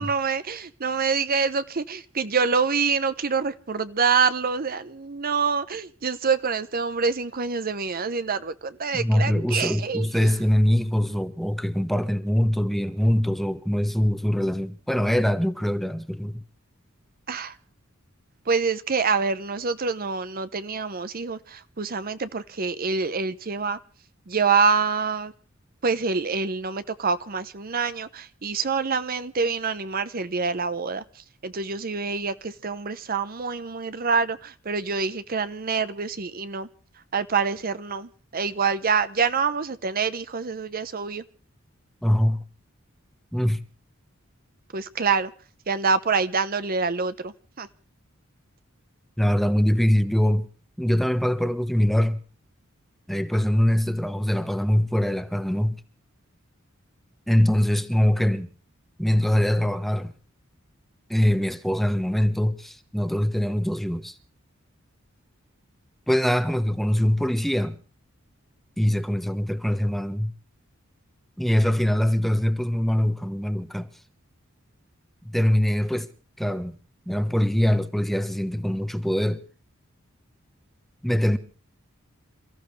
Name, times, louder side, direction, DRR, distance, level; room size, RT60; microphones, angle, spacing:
voice 1, 0.0-10.3 17.3-17.6 18.5-23.8 24.3-25.3 25.8-36.7 37.1-41.2 44.7-45.3 45.7-47.7, right 5 dB, 45° right, 0.9 m, -26 dB
voice 2, 8.9-16.4 42.0-42.4 43.3-43.6 49.2-50.5 50.8-52.2 53.1-55.8 57.3-58.5 59.0-60.1 61.1-64.1 66.1-67.8 68.8-70.3 71.4-73.9 75.2-76.1 76.4-76.7 77.1-79.4 81.0-81.4, equal, ahead, 1.2 m, -23 dB
28.5 x 15.0 x 3.3 m
head